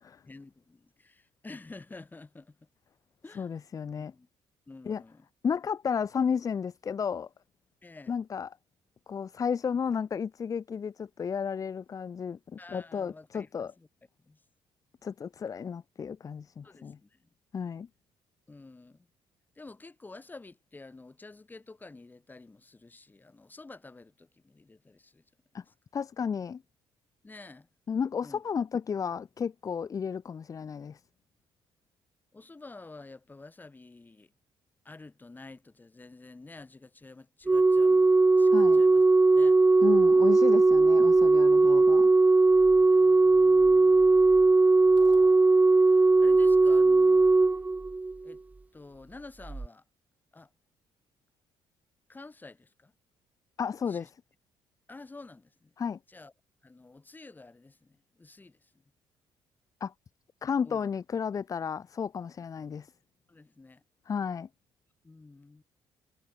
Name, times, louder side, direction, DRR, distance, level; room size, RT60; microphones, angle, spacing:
voice 1, 0.3-2.7 3.2-3.5 4.0-4.3 4.7-5.3 7.8-8.1 12.6-13.9 14.2-14.4 16.6-17.3 18.5-19.1 19.6-25.2 25.7-25.8 27.2-27.7 28.2-28.4 32.3-34.3 34.8-39.0 39.3-39.6 40.2-40.3 41.6-41.9 42.6-44.3 44.8-45.3 45.8-47.3 48.2-48.4 48.7-49.8 50.3-50.5 52.1-52.9 53.9-54.1 54.9-55.7 56.1-56.3 56.6-58.8 60.6-60.9 63.3-63.8 65.0-65.6, left 3 dB, 20° left, 4.5 m, -50 dB
voice 2, 3.4-4.1 4.9-5.0 5.4-7.3 8.1-8.5 9.1-13.7 15.0-17.0 17.5-17.9 25.5-25.6 25.9-26.6 27.9-31.0 38.5-38.8 39.8-42.1 53.6-54.1 55.8-56.0 59.8-59.9 60.4-62.9 64.1-64.5, left 6 dB, 35° left, 0.8 m, -33 dB
Organ, 37.5-48.3 49.5-49.7, right 3 dB, 15° right, 0.5 m, -20 dB
sound 1, 45.0-46.3, right 8 dB, 55° right, 6.5 m, -56 dB
cardioid pair, 95°, 9 cm